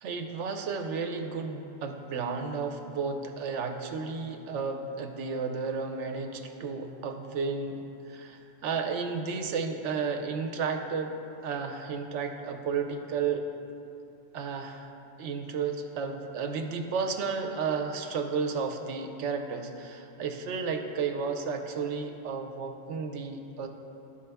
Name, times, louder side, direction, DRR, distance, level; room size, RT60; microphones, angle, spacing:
voice 1, 0.0-7.8 8.1-11.1 11.4-13.4 14.3-14.9 15.2-23.7, right 5 dB, 85° right, 5 dB, 1.0 m, -32 dB
11.0 x 5.0 x 3.4 m, 2.7 s
omnidirectional pair, 1.2 m